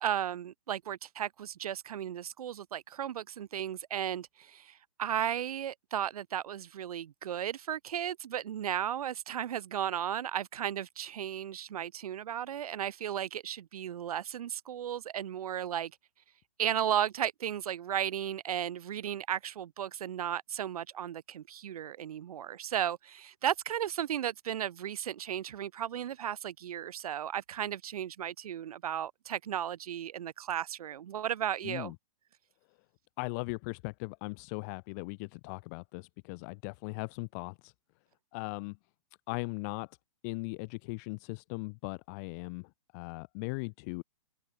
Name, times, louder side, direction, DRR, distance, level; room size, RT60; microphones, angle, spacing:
voice 1, 0.0-15.9 16.6-31.9, right 10 dB, 70° right, 0.7 m, -35 dB
voice 2, 31.6-32.0 33.2-37.7 38.3-38.8 39.3-40.0 40.2-44.0, left 31 dB, 25° left, 0.8 m, -39 dB
open air
hypercardioid pair, 160°, 19 cm